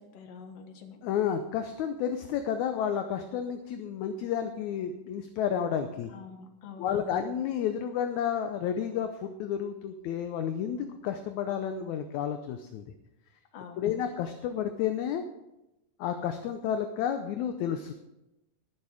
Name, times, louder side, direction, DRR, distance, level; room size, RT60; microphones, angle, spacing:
voice 1, 0.0-1.0 6.1-7.2 13.5-14.0, left 6 dB, 55° left, 5 dB, 2.3 m, -46 dB
voice 2, 1.0-6.1 6.8-12.8 13.8-15.2 16.0-17.9, left 8 dB, 75° left, 7 dB, 2.0 m, -31 dB
20.5 x 7.0 x 4.9 m, 0.94 s
omnidirectional pair, 3.6 m